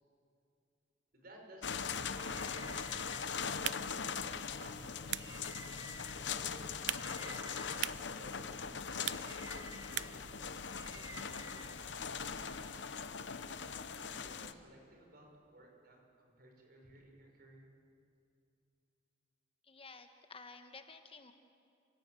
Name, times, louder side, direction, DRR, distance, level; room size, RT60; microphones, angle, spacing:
voice 1, 1.1-3.2 4.6-5.4 6.3-8.8 9.7-13.0 13.9-17.7, right 1 dB, 55° right, 1 dB, 5.6 m, -58 dB
sound 1, 1.6-14.5, left 6 dB, 75° left, 0.9 m, -41 dB
sound 2, 2.1-12.3, right 3 dB, 20° right, 1.0 m, -55 dB
sound 3, 3.5-10.3, right 13 dB, 75° right, 0.5 m, -45 dB
voice 2, 19.6-21.3, left 4 dB, 30° left, 7 dB, 1.2 m, -53 dB
28.0 x 16.5 x 9.1 m, 2.5 s
head